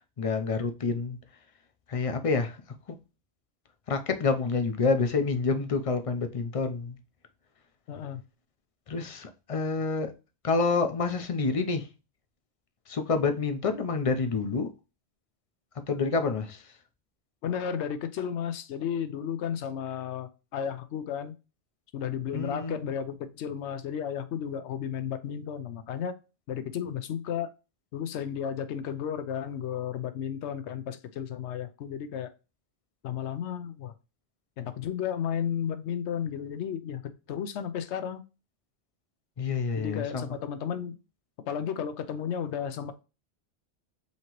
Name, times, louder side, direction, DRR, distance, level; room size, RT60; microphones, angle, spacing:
voice 1, 0.2-1.2 1.9-2.6 2.9-3.0 3.9-7.0 8.9-10.1 10.4-11.9 12.9-14.7 15.9-16.7 22.3-22.9 39.4-40.4, left 4 dB, 40° left, 0.5 m, -28 dB
voice 2, 7.9-8.2 17.4-21.4 21.9-26.2 26.5-27.5 27.9-32.3 33.0-33.9 34.6-37.0 37.3-38.2 39.8-41.0 41.5-42.9, left 8 dB, 80° left, 0.9 m, -33 dB
5.7 x 2.9 x 3.0 m
omnidirectional pair, 1.1 m